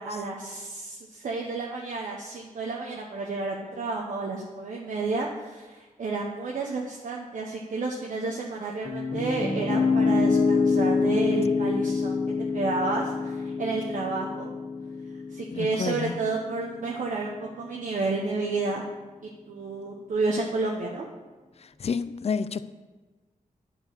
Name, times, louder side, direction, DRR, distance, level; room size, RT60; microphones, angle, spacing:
voice 1, 0.0-12.2 12.5-14.5 15.3-18.8 19.5-21.1, right 3 dB, 70° right, 1.0 m, -31 dB
Piano, 8.8-16.9, left 4 dB, 75° left, 2.0 m, -26 dB
voice 2, 15.5-16.2 21.6-22.6, left 6 dB, 50° left, 0.4 m, -30 dB
10.0 x 4.8 x 6.6 m
wide cardioid pair, 85°, 14 cm